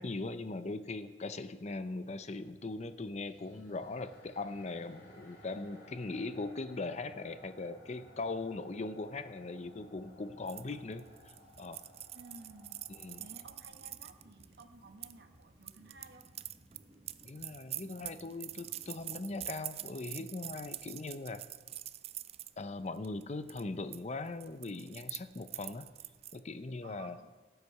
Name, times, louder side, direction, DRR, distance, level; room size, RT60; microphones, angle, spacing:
voice 1, 0.0-11.1 11.6-11.8 13.0-13.2 17.2-21.4 22.6-25.9 26.3-27.2, left 3 dB, 40° left, 11 dB, 0.6 m, -40 dB
sound 1, 2.3-19.5, right 1 dB, 15° right, 1.4 m, -63 dB
sound 2, 3.2-13.7, left 1 dB, 75° left, 3.2 m, -59 dB
sound 3, 10.5-15.1 15.6-22.5 23.0-23.2 23.5-24.0 24.2-26.4, right 13 dB, 35° right, 0.3 m, -45 dB
voice 2, 12.1-12.8 13.2-16.3 26.8-27.4, right 2 dB, 65° right, 5 dB, 1.2 m, -55 dB
17.5 x 8.0 x 4.8 m, 1.3 s
head